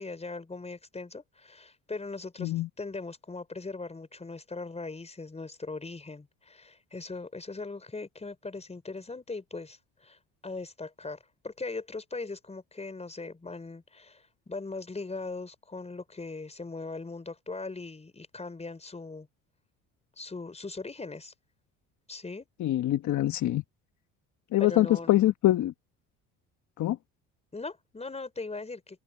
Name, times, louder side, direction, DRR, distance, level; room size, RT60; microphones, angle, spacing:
voice 1, 0.0-11.2 11.4-19.3 20.2-21.3 22.1-22.5 24.6-25.3 27.5-29.0, left 3 dB, 20° left, 4.7 m, -40 dB
voice 2, 22.6-23.6 24.5-25.7 26.8-27.0, left 14 dB, 55° left, 1.3 m, -24 dB
supercardioid pair, 75°, 35 cm